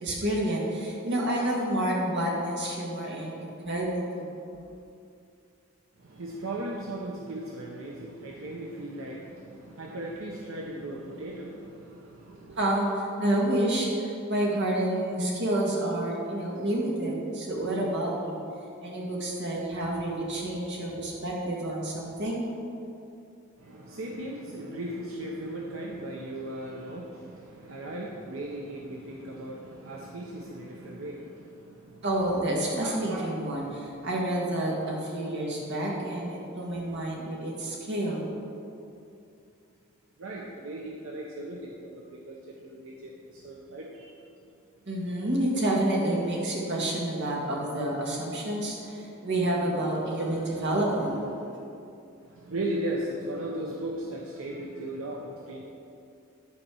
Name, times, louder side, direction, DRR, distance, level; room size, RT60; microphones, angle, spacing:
voice 1, 0.0-4.3 12.6-18.4 18.8-22.4 32.0-38.2 44.9-51.7, right 1 dB, 60° right, -2 dB, 1.9 m, -29 dB
voice 2, 6.0-12.6 23.6-32.0 40.2-44.2 50.4-50.5 52.2-55.6, right 1 dB, 85° right, -2 dB, 0.8 m, -37 dB
11.0 x 4.3 x 6.2 m, 2.6 s
head